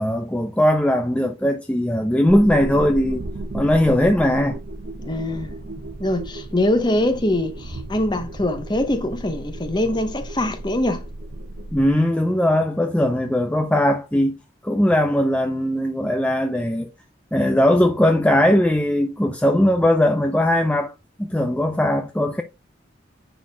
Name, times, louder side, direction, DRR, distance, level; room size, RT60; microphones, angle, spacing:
voice 1, 0.0-3.2 3.5-4.6 11.7-14.3 14.6-16.9 17.3-20.9 21.2-22.4, left 1 dB, 5° left, 0.5 m, -19 dB
sound 1, 2.3-11.9, right 1 dB, 65° right, 1.2 m, -34 dB
voice 2, 5.0-5.5 6.0-11.0, left 1 dB, 25° left, 1.0 m, -23 dB
9.9 x 4.2 x 2.3 m
head